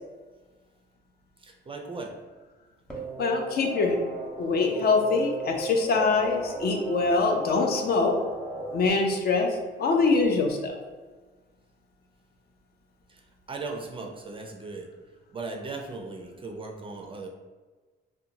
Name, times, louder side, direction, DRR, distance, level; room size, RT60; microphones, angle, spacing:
voice 1, 1.4-2.2 13.1-13.2 13.5-14.9 15.3-17.3, right 3 dB, 25° right, 2 dB, 0.3 m, -37 dB
sound 1, 2.9-8.9, right 2 dB, 5° left, 0.7 m, -37 dB
voice 2, 3.2-4.0 4.4-8.2 8.7-10.8, left 3 dB, 50° left, 3 dB, 0.5 m, -24 dB
2.7 x 2.1 x 2.7 m, 1.3 s
cardioid pair, 90°, 20 cm